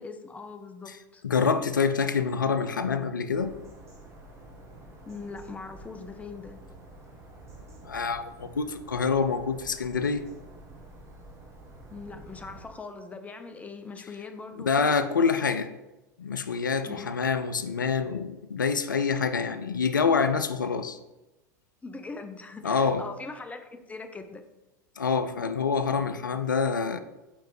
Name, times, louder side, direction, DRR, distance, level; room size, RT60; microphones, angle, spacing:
voice 1, 0.0-1.2 5.1-6.6 11.9-15.0 16.9-17.2 21.8-24.4, left 4 dB, 15° left, 7 dB, 0.7 m, -41 dB
voice 2, 1.2-3.6 7.8-10.2 14.6-15.7 16.2-21.0 22.6-23.0 25.0-27.0, left 5 dB, 90° left, 11 dB, 0.4 m, -26 dB
sound 1, 3.3-12.7, right 1 dB, 30° right, 1.8 m, -48 dB
5.2 x 4.4 x 4.8 m, 1.0 s
hypercardioid pair, 90°, 10 cm